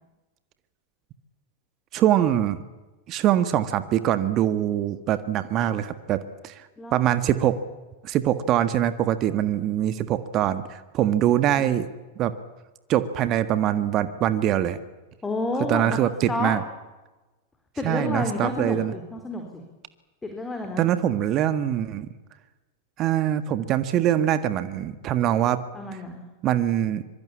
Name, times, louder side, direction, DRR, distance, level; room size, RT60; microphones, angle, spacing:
voice 1, 1.9-2.6 3.1-6.7 6.9-7.6 8.0-11.9 12.2-12.3 12.9-14.8 15.7-16.6 17.8-18.9 20.8-22.1 23.0-25.6 26.4-27.0, right 11 dB, 35° right, 12 dB, 1.6 m, -23 dB
voice 2, 6.8-7.1 15.2-16.0 16.3-16.5 17.8-19.6 20.2-20.9 25.7-26.2, left 2 dB, 10° left, 4 dB, 4.1 m, -30 dB
25.0 x 24.0 x 8.6 m, 1.1 s
figure-of-eight pair, 90°, 0 cm